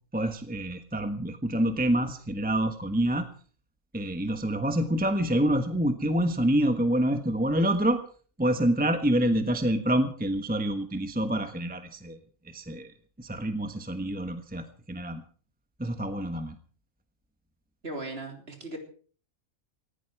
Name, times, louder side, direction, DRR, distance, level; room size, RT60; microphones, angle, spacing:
voice 1, 0.1-3.3 3.9-8.0 8.4-12.2 12.4-12.9 13.2-15.2 15.8-16.5, right 1 dB, 5° right, 8 dB, 1.2 m, -27 dB
voice 2, 17.8-18.8, right 2 dB, 45° right, 4 dB, 3.7 m, -37 dB
19.0 x 16.0 x 4.8 m, 0.43 s
omnidirectional pair, 1.5 m